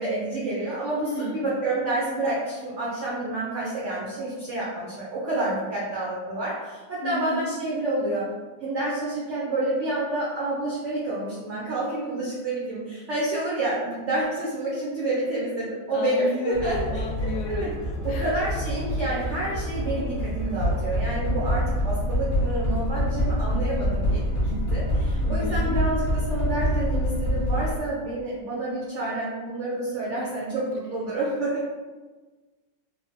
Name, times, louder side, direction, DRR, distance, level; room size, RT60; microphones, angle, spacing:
voice 1, 0.0-8.2 8.6-17.1 17.4-17.7 18.0-31.7, right 2 dB, 70° right, -7 dB, 0.6 m, -29 dB
voice 2, 1.0-1.5 7.0-7.5 15.9-17.7 18.1-18.3 25.2-25.8, left 1 dB, 75° left, 1 dB, 1.1 m, -33 dB
sound 1, 16.5-27.8, equal, 50° left, 0.8 m, -26 dB
3.5 x 2.0 x 2.6 m, 1.3 s
omnidirectional pair, 1.9 m